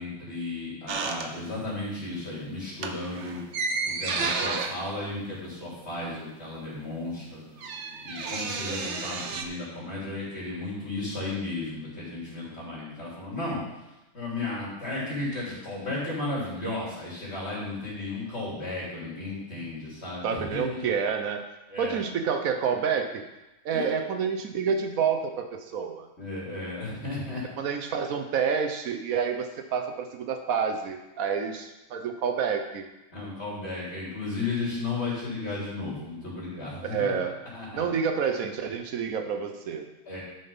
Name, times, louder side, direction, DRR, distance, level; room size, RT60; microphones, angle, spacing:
voice 1, 0.0-3.4 3.9-7.4 8.0-13.6 14.1-20.8 21.7-22.0 23.7-23.9 26.2-27.4 33.1-37.1 37.5-37.8 40.1-40.2, left 2 dB, 50° left, -6 dB, 3.4 m, -34 dB
sound 1, 0.9-1.8 2.1-2.3 2.7-6.2 6.4-6.5 6.7-9.4, right 4 dB, 60° right, 1.1 m, -32 dB
voice 2, 20.2-21.4 21.8-23.2 23.6-26.1 27.6-32.9 36.8-37.4 37.7-39.9, right 6 dB, 85° right, 6 dB, 1.2 m, -28 dB
11.5 x 5.5 x 5.4 m, 0.99 s
omnidirectional pair, 1.4 m